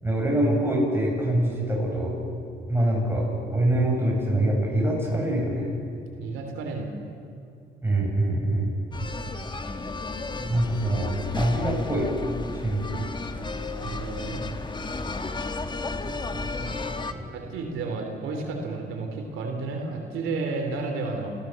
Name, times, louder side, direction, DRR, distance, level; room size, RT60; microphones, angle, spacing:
voice 1, 0.0-2.1 2.7-3.3 3.5-5.7 7.8-8.7 10.3-12.1 12.6-13.1 16.0-17.3, right 1 dB, 10° right, -2 dB, 8.0 m, -25 dB
voice 2, 6.1-7.0 13.8-14.4 17.3-21.3, right 3 dB, 90° right, 3 dB, 3.1 m, -32 dB
sound 1, 8.9-17.1, left 3 dB, 25° left, 1.4 m, -33 dB
29.0 x 15.5 x 7.5 m, 2.5 s
cardioid pair, 90°, 20 cm